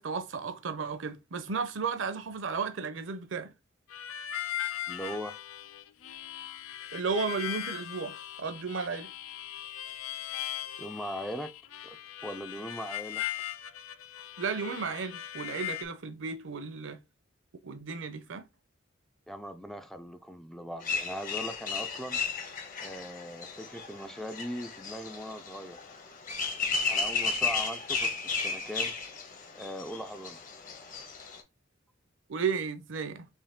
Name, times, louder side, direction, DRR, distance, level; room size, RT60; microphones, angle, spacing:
voice 1, 0.0-3.5 6.9-9.1 14.4-17.0 17.6-18.5 32.3-33.3, right 5 dB, 65° right, 0.6 m, -34 dB
Harmonica, 3.9-15.8, left 11 dB, 90° left, 0.4 m, -39 dB
voice 2, 4.9-5.4 10.8-11.5 11.8-13.2 19.3-22.2 22.8-25.8 26.9-29.0 29.6-30.4, equal, ahead, 0.3 m, -40 dB
sound 1, 20.8-31.4, left 4 dB, 45° left, 1.0 m, -34 dB
4.6 x 3.0 x 3.5 m
head